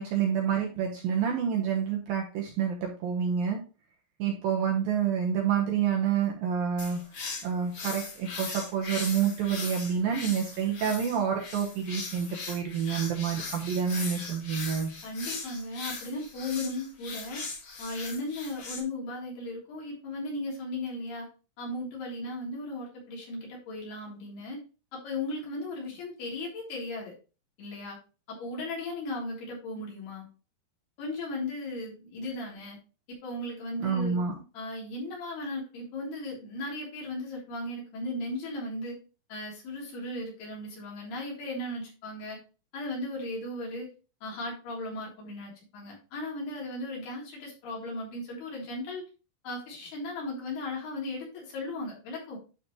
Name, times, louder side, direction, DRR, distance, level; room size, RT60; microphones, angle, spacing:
voice 1, 0.0-3.6 4.2-7.0 7.4-14.9 33.8-34.3, right 7 dB, 70° right, 0 dB, 2.4 m, -28 dB
sound 1, 6.8-18.8, left 4 dB, 75° left, 1.1 m, -39 dB
voice 2, 15.0-17.4 17.8-21.3 21.6-24.6 24.9-27.1 27.6-28.0 28.3-30.3 31.0-32.8 33.1-34.2 34.5-39.0 39.3-42.4 42.7-43.9 44.2-49.0 49.4-52.4, left 2 dB, 60° left, -4 dB, 5.2 m, -36 dB
11.5 x 5.1 x 3.0 m, 0.33 s
omnidirectional pair, 5.2 m